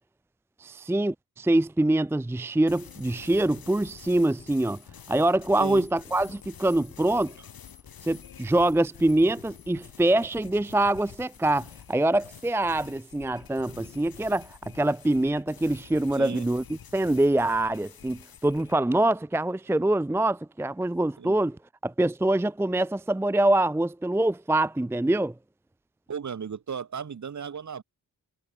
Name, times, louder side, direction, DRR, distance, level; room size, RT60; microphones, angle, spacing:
voice 1, 0.6-4.8 5.1-7.3 8.0-16.6 16.9-21.6 21.8-25.3, right 1 dB, 5° right, 0.6 m, -24 dB
sound 1, 2.7-18.7, left 8 dB, 75° left, 4.6 m, -48 dB
voice 2, 5.6-5.9 16.1-16.5 21.2-21.5 26.1-27.8, right 7 dB, 50° right, 2.9 m, -35 dB
wide cardioid pair, 155°, 36 cm